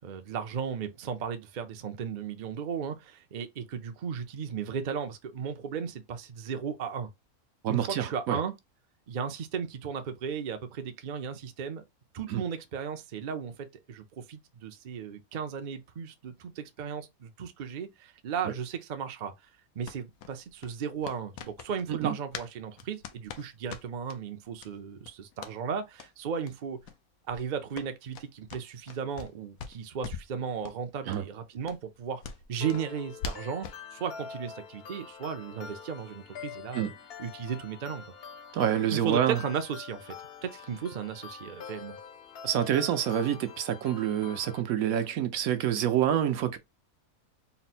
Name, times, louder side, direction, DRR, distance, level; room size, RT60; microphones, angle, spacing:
voice 1, 0.0-7.1 7.7-8.5 9.1-11.8 12.1-19.3 19.8-26.8 27.3-32.2 32.5-36.9 37.2-38.1 38.9-40.1 40.4-42.0, right 7 dB, 50° right, 0.5 m, -35 dB
voice 2, 7.6-8.4 12.3-12.4 21.9-22.2 31.1-31.2 36.7-36.9 38.5-39.4 42.4-46.6, right 10 dB, 80° right, 1.1 m, -27 dB
sound 1, 19.8-22.5 22.8-24.2 24.6-24.7 25.0-25.6 25.9-26.1 26.4-26.5 26.8-27.0 27.3-29.3 29.6-30.3 30.6-30.8 31.1-31.2 31.6-33.8, left 6 dB, 80° left, 1.1 m, -42 dB
sound 2, 32.6-44.6, left 6 dB, 55° left, 0.7 m, -45 dB
4.2 x 2.1 x 4.2 m
omnidirectional pair, 1.5 m